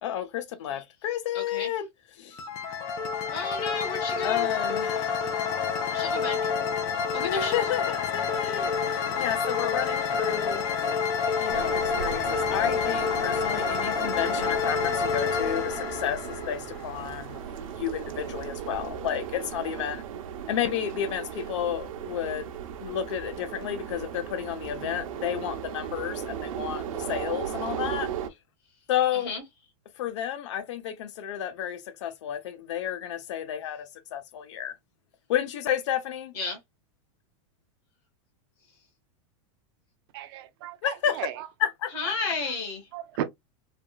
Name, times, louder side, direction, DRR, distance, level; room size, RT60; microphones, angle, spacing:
voice 1, 0.0-1.9 2.1-2.4 4.2-5.1 7.2-10.6 11.4-17.4 17.7-20.0 20.5-22.5 22.8-28.1 28.9-29.3 30.0-33.9 34.1-34.7 35.3-36.3 40.8-41.3 41.6-42.1, left 10 dB, 60° left, 0.7 m, -31 dB
voice 2, 1.3-1.7 3.3-4.5 5.9-6.5 7.1-7.6 29.2-29.4 36.3-36.6 41.9-42.8, left 4 dB, 45° left, 1.6 m, -33 dB
sound 1, 2.3-17.2, left 6 dB, 20° left, 0.4 m, -28 dB
sound 2, 11.5-28.3, right 8 dB, 80° right, 0.7 m, -36 dB
voice 3, 40.1-41.5 42.9-43.2, right 12 dB, 45° right, 0.5 m, -35 dB
3.5 x 2.3 x 2.3 m
supercardioid pair, 175°, 17 cm